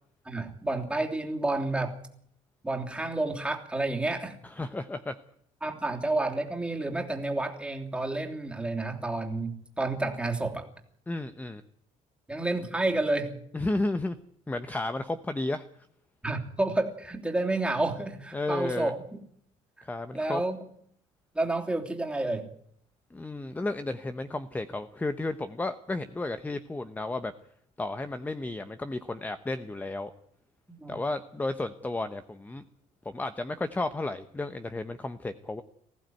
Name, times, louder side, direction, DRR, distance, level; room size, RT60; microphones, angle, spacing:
voice 1, 0.2-2.0 2.6-4.4 5.6-10.7 12.3-13.4 16.2-19.0 19.8-19.9 20.1-20.6 21.3-22.5 30.7-31.0, right 2 dB, 5° right, 2 dB, 3.1 m, -30 dB
voice 2, 4.4-5.2 11.1-11.6 13.5-14.2 14.5-15.6 18.3-18.9 19.8-20.4 23.1-27.3 27.8-30.1 30.9-32.6 33.0-35.6, left 2 dB, 10° left, 11 dB, 0.9 m, -33 dB
20.0 x 15.0 x 9.3 m, 0.67 s
cardioid pair, 120°, 14 cm